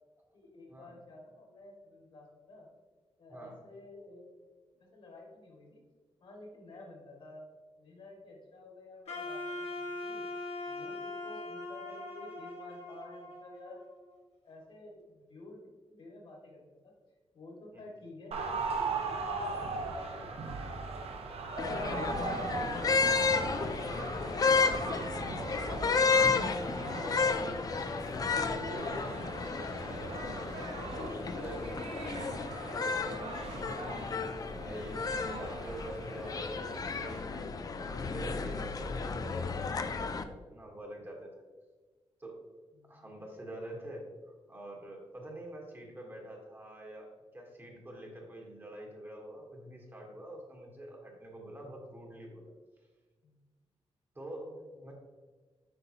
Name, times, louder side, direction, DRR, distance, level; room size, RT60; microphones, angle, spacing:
voice 1, 0.3-2.7 3.2-5.8 6.2-7.4 7.8-10.2 10.6-13.8 14.4-16.9 17.3-21.1 21.6-23.7 24.0-24.9 25.5-29.7 30.9-32.0 32.3-33.5 42.7-43.1 53.2-53.4 54.4-54.9, left 2 dB, 60° left, -1 dB, 2.0 m, -51 dB
voice 2, 3.3-3.6 17.7-17.8 25.5-25.8 31.3-31.7 32.7-33.0 34.5-36.7 37.2-41.4 42.2-42.4 42.9-52.5 54.1-54.6 54.8-54.9, right 1 dB, 20° right, -1 dB, 1.3 m, -46 dB
Wind instrument woodwind instrument, 9.1-14.1, left 2 dB, 90° left, 1.7 m, -41 dB
sound 1, 18.3-37.2, right 4 dB, 75° right, 0.9 m, -39 dB
sound 2, 21.6-40.2, left 4 dB, 35° left, 0.4 m, -32 dB
7.9 x 5.5 x 2.9 m, 1.4 s
wide cardioid pair, 155°, 10 cm